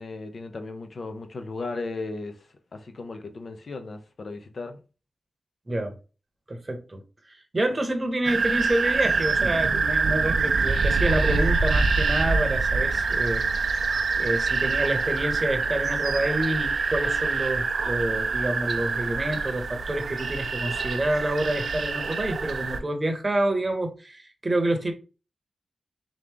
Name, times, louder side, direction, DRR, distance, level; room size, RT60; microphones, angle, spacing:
voice 1, 0.0-2.4 2.7-4.8, left 3 dB, 55° left, 0.8 m, -36 dB
voice 2, 5.7-6.0 6.5-7.0 7.3-13.5 14.2-24.9, right 1 dB, 25° right, 0.9 m, -28 dB
sound 1, 8.2-22.8, right 4 dB, 75° right, 0.4 m, -25 dB
3.7 x 3.1 x 3.6 m
wide cardioid pair, 135°, 0 cm